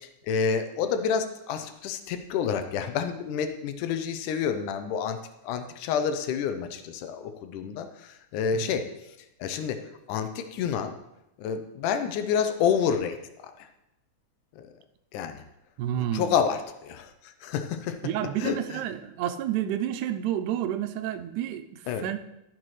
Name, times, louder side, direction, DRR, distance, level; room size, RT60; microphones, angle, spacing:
voice 1, 0.0-8.9 9.4-9.8 10.1-10.9 11.4-13.2 13.4-13.7 14.6-14.7 15.1-15.4 16.1-17.1 17.4-18.0 18.4-18.8 21.9-22.0, left 7 dB, 90° left, 8 dB, 2.2 m, -29 dB
voice 2, 15.8-16.4 18.0-22.2, right 11 dB, 90° right, 9 dB, 2.1 m, -30 dB
15.0 x 6.0 x 3.2 m, 0.88 s
omnidirectional pair, 3.5 m